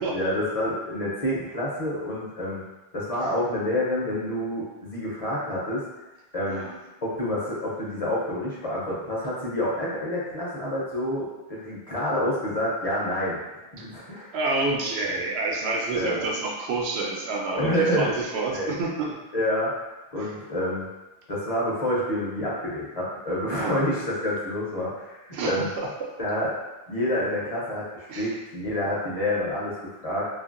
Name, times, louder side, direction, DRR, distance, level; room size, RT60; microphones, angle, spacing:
voice 1, 0.1-2.6 2.9-5.9 6.3-6.6 7.0-13.4 13.7-14.3 15.9-16.2 17.5-18.2 18.5-18.7 19.3-19.7 20.1-20.9 21.3-25.7 26.2-26.6 26.9-30.3, left 1 dB, 45° left, -6 dB, 0.6 m, -28 dB
voice 2, 6.5-6.8 14.3-19.1 20.2-20.4 23.5-23.8 25.3-25.5 25.8-25.9 28.1-28.3, right 3 dB, 85° right, -2 dB, 0.8 m, -28 dB
2.6 x 2.5 x 2.4 m, 1.1 s
omnidirectional pair, 1.0 m